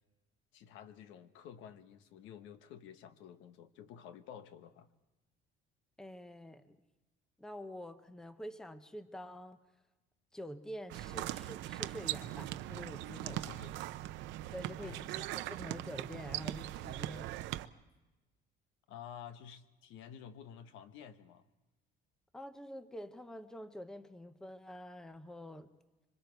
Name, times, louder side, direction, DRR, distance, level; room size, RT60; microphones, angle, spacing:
voice 1, 0.5-4.9 13.1-13.9 14.8-15.0 18.9-21.5, left 8 dB, 85° left, 10 dB, 1.2 m, -51 dB
voice 2, 6.0-6.8 7.4-9.6 10.3-13.5 14.5-17.4 22.3-25.7, equal, 5° left, 10 dB, 0.7 m, -47 dB
sound 1, 10.9-17.7, right 15 dB, 70° right, 0.7 m, -40 dB
26.0 x 24.5 x 4.6 m, 1.1 s
cardioid pair, 170°, 19 cm